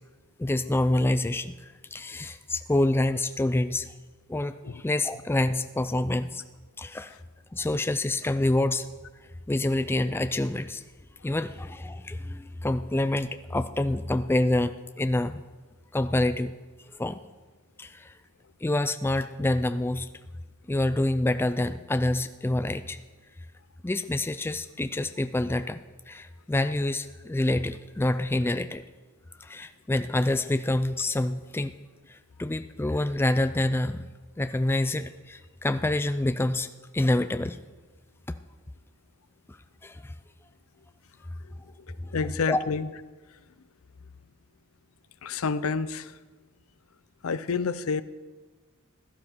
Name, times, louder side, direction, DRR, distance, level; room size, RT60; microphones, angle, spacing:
voice 1, 0.4-3.9 4.3-6.4 6.8-7.1 7.5-8.9 9.5-10.8 11.2-15.4 15.9-16.5 16.9-17.2 17.8-18.1 18.6-20.1 20.7-23.0 23.8-25.8 26.1-28.8 29.4-31.7 32.1-34.1 34.4-36.7 36.9-37.6 39.8-40.1 42.5-42.6, left 1 dB, 10° left, 10 dB, 0.3 m, -27 dB
voice 2, 42.1-42.9 45.2-46.1 47.2-48.0, left 5 dB, 75° left, 15 dB, 0.6 m, -28 dB
16.0 x 12.0 x 4.5 m, 1.3 s
head